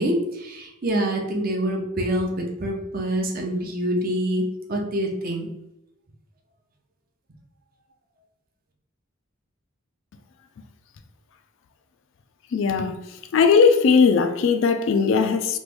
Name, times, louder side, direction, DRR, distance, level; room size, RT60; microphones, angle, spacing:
voice 1, 0.0-5.5, right 1 dB, 40° right, 0.6 m, -26 dB
voice 2, 12.5-13.0 13.3-15.6, left 5 dB, 60° left, 0.3 m, -18 dB
3.0 x 2.5 x 3.4 m
head